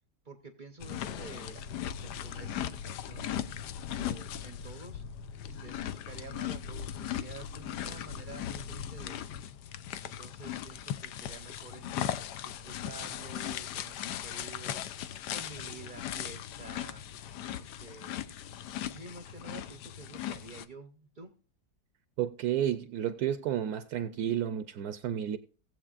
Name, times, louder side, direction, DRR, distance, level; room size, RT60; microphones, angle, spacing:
voice 1, 0.2-3.4 4.0-5.0 5.4-9.5 10.0-12.1 12.4-14.9 15.3-17.1 17.6-18.4 18.9-21.4, right 4 dB, 45° right, 0.7 m, -49 dB
sound 1, 0.8-20.7, left 10 dB, 80° left, 1.2 m, -38 dB
voice 2, 22.2-25.4, right 10 dB, 70° right, 1.0 m, -31 dB
17.5 x 7.7 x 2.5 m
omnidirectional pair, 1.8 m